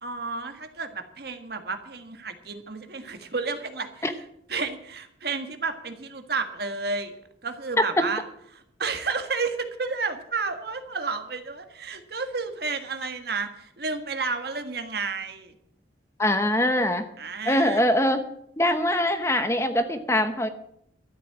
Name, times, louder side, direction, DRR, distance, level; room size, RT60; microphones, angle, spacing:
voice 1, 0.0-4.1 4.5-7.2 7.4-8.2 8.5-15.5 17.2-17.8, right 4 dB, 55° right, 7 dB, 1.6 m, -31 dB
voice 2, 16.2-17.1 17.4-18.2 18.6-20.5, left 1 dB, 15° left, 8 dB, 0.9 m, -23 dB
13.0 x 8.3 x 8.5 m, 0.70 s
head